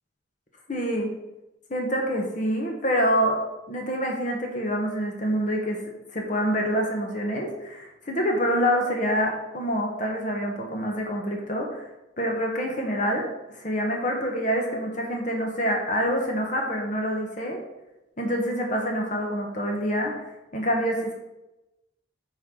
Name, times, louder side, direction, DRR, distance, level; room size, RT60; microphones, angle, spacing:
voice 1, 0.7-1.1 1.7-3.4 3.7-5.8 6.1-11.8 12.2-13.3 13.6-17.6 18.2-20.1 20.5-21.1, equal, 40° left, 0 dB, 1.2 m, -26 dB
9.0 x 4.6 x 3.8 m, 0.97 s
head